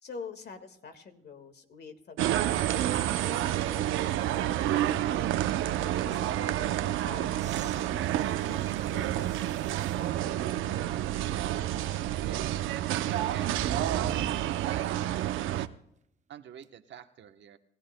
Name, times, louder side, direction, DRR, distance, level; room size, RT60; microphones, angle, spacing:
voice 1, 0.0-5.4 6.0-10.3, left 4 dB, 55° left, 7 dB, 1.8 m, -47 dB
sound 1, 2.2-15.7, right 12 dB, 85° right, 0.6 m, -29 dB
sound 2, 7.3-10.1 10.7-10.8 13.5-14.8 16.6-16.7, right 7 dB, 35° right, 0.5 m, -42 dB
voice 2, 12.2-12.7 13.3-13.6 14.7-15.7 16.3-17.6, right 9 dB, 65° right, 8 dB, 1.0 m, -46 dB
28.0 x 15.5 x 2.2 m, 0.76 s
cardioid pair, 90°, 20 cm